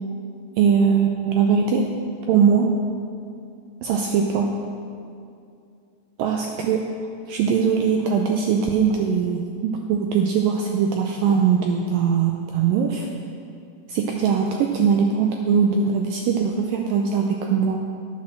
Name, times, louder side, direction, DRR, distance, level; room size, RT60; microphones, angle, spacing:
voice 1, 0.6-1.9 2.3-2.7 3.8-4.5 6.2-6.8 7.3-13.1 13.9-17.8, right 6 dB, 90° right, 2 dB, 2.0 m, -21 dB
10.5 x 8.6 x 6.4 m, 2.4 s
omnidirectional pair, 4.7 m